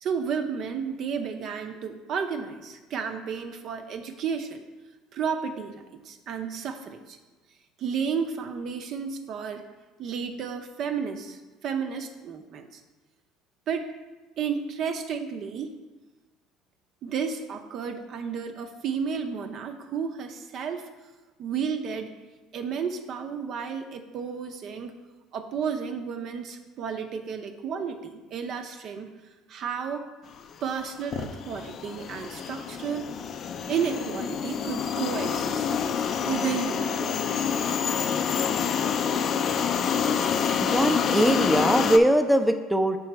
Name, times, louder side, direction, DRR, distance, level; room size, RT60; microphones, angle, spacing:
voice 1, 0.0-4.6 5.1-7.2 7.8-9.6 10.0-12.8 13.7-13.9 14.4-15.7 17.0-20.9 21.4-22.1 22.5-25.0 25.3-29.1 29.5-30.0 30.6-33.1 33.7-35.7 36.2-37.7, right 6 dB, 55° right, 6 dB, 0.6 m, -32 dB
sound 1, 30.6-30.8 31.1-42.0, left 7 dB, 50° left, 0.4 m, -27 dB
voice 2, 40.6-43.0, right 1 dB, 5° right, 7 dB, 0.5 m, -21 dB
6.1 x 3.8 x 4.5 m, 1.2 s
supercardioid pair, 85°, 0 cm